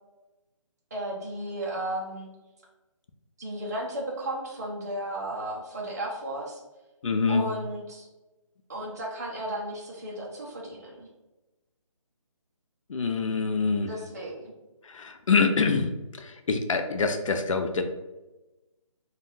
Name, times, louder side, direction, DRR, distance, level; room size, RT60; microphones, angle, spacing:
voice 1, 0.9-2.3 3.4-6.6 7.3-8.1 8.7-11.1 13.9-14.5, right 1 dB, 30° right, -4 dB, 0.5 m, -34 dB
voice 2, 7.0-7.4 12.9-13.9 14.9-17.8, left 4 dB, 70° left, 6 dB, 0.5 m, -25 dB
3.4 x 2.2 x 2.6 m, 1.1 s
hypercardioid pair, 175°, 17 cm